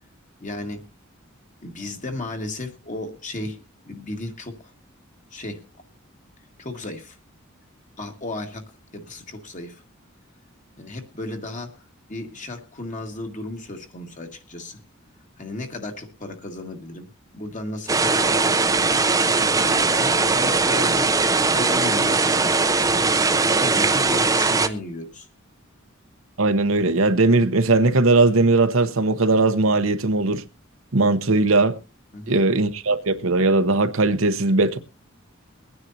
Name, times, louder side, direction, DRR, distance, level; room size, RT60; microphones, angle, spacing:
voice 1, 0.4-0.8 1.6-4.7 5.3-5.6 6.6-7.2 8.0-9.8 10.8-11.8 12.1-14.8 15.4-17.1 17.3-18.9 19.6-21.1 21.4-23.0 23.5-25.3 32.1-32.4, left 2 dB, 40° left, 1.7 m, -34 dB
sound 1, 17.9-24.7, right 3 dB, 15° right, 0.7 m, -20 dB
voice 2, 26.4-30.4 30.9-31.7 32.3-34.8, right 3 dB, 75° right, 1.0 m, -19 dB
23.0 x 9.7 x 2.8 m
head